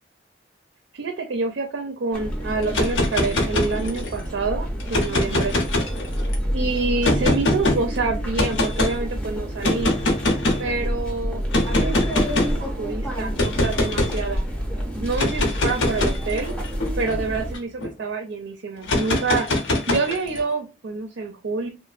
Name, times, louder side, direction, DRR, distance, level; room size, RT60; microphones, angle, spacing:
voice 1, 0.9-5.5 6.5-9.9 10.6-14.4 15.0-16.5 17.0-19.5 19.9-21.7, right 3 dB, 85° right, 4 dB, 0.5 m, -27 dB
sound 1, 2.1-17.5, equal, 5° left, 0.5 m, -28 dB
sound 2, 2.6-4.2 4.8-6.3 7.0-7.8 8.4-8.9 9.6-10.7 11.5-12.6 13.4-14.2 15.1-17.9 18.8-20.4, left 1 dB, 85° left, 0.8 m, -23 dB
3.0 x 2.1 x 2.4 m, 0.29 s
head